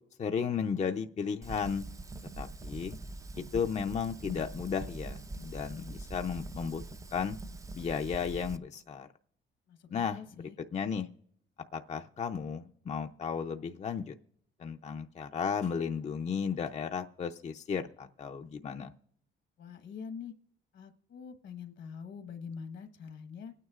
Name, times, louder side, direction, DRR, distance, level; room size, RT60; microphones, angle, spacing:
voice 1, 0.2-1.8 2.4-3.0 3.4-6.8 7.1-7.4 7.7-9.1 9.9-10.2 10.7-11.1 11.7-14.1 14.6-18.9, left 6 dB, 35° left, 5 dB, 0.5 m, -34 dB
Fire, 1.4-8.6, right 2 dB, 15° right, 0.4 m, -43 dB
voice 2, 9.7-10.6 19.6-20.3 20.7-23.5, left 6 dB, 70° left, 7 dB, 1.2 m, -45 dB
25.0 x 9.4 x 2.4 m, 0.69 s
cardioid pair, 90°, 20 cm